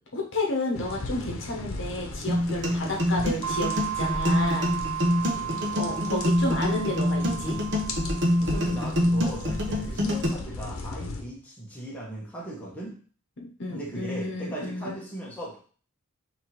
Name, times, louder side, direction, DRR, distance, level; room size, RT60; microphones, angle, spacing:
voice 1, 0.1-4.7 5.8-7.6 13.4-15.0, left 2 dB, 60° left, -1 dB, 1.0 m, -31 dB
sound 1, 0.7-11.2, left 2 dB, 85° left, 0.8 m, -37 dB
sound 2, 2.3-10.3, left 1 dB, 55° right, 0.9 m, -25 dB
sound 3, 3.4-9.9, right 11 dB, 90° right, 0.3 m, -35 dB
voice 2, 5.1-5.5 8.4-12.9 13.7-15.6, right 1 dB, 5° left, -5 dB, 1.2 m, -38 dB
3.5 x 2.9 x 4.4 m, 0.43 s
head